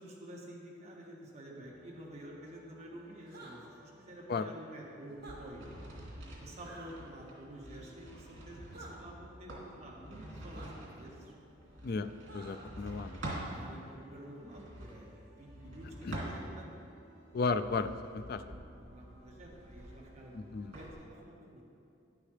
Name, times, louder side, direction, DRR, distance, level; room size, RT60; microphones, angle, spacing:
voice 1, 0.0-5.7 6.2-10.7 11.0-11.3 13.4-16.7 18.8-20.4 20.7-21.6, right 1 dB, 35° right, -3 dB, 1.6 m, -50 dB
sound 1, 1.6-20.9, equal, 30° left, 2.7 m, -61 dB
sound 2, 3.3-3.6 5.1-5.4 6.6-6.9 8.7-8.9 10.5-10.7 12.3-12.7, right 2 dB, 55° right, 1.9 m, -50 dB
sound 3, 5.2-13.5 14.3-16.8 17.3-20.9, right 1 dB, 75° right, 2.6 m, -47 dB
voice 2, 12.3-13.2 16.0-16.2 17.3-18.4 20.3-20.7, left 4 dB, 55° left, 10 dB, 0.4 m, -34 dB
11.5 x 10.0 x 3.3 m, 2.6 s
head